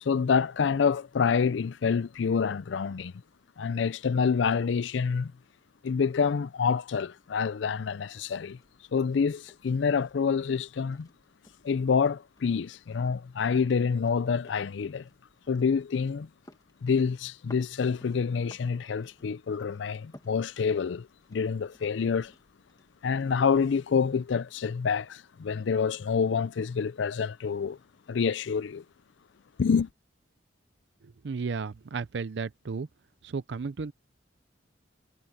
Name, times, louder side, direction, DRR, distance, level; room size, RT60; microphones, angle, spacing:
voice 1, 0.0-3.1 3.6-5.3 5.8-8.6 8.9-11.1 11.6-15.1 15.5-16.3 16.8-22.3 23.0-27.8 28.1-28.8 29.6-29.9, left 6 dB, 75° left, 0.4 m, -27 dB
sound 1, 8.4-24.3, left 1 dB, 20° left, 1.8 m, -59 dB
voice 2, 31.2-32.9 33.2-33.9, right 5 dB, 65° right, 0.5 m, -33 dB
head